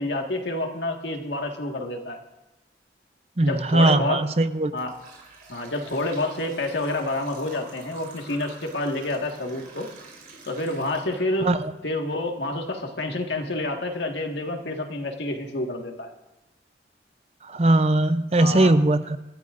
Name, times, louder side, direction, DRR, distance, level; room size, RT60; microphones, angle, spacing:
voice 1, 0.0-2.2 3.4-4.2 4.7-4.9 5.5-9.9 10.5-11.5 11.8-16.1 18.4-18.7, left 2 dB, 90° left, 3 dB, 1.8 m, -28 dB
voice 2, 3.4-4.7 11.4-11.7 17.5-19.2, right 2 dB, 35° right, 11 dB, 0.6 m, -20 dB
sound 1, 4.8-11.6 12.1-12.2 13.0-13.1 13.7-13.8 14.2-14.4, right 3 dB, 55° right, 4.3 m, -47 dB
26.5 x 13.5 x 2.6 m, 1.0 s
head